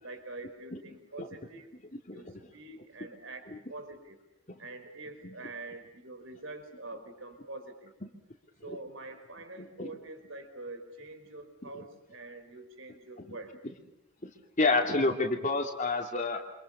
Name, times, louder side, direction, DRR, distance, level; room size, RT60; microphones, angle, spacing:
voice 1, 0.0-1.8 2.1-4.2 4.6-7.9 8.6-13.6, right 2 dB, 60° right, 8 dB, 5.1 m, -45 dB
voice 2, 14.6-16.4, left 3 dB, 35° left, 3 dB, 2.7 m, -28 dB
29.5 x 26.5 x 5.8 m, 0.88 s
head